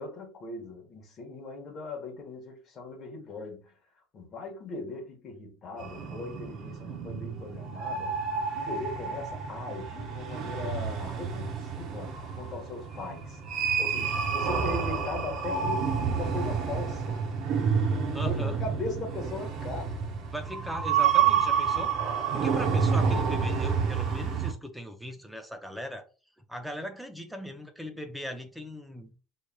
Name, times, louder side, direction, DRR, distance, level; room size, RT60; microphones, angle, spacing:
voice 1, 0.0-3.7 4.1-8.2 8.5-17.2 18.2-19.9, left 3 dB, 25° left, 1.2 m, -39 dB
sound 1, 5.8-24.5, right 6 dB, 35° right, 0.7 m, -29 dB
voice 2, 18.1-18.6 20.3-26.1 26.5-29.1, equal, ahead, 0.5 m, -39 dB
5.5 x 3.1 x 2.3 m
cardioid pair, 180°, 0 cm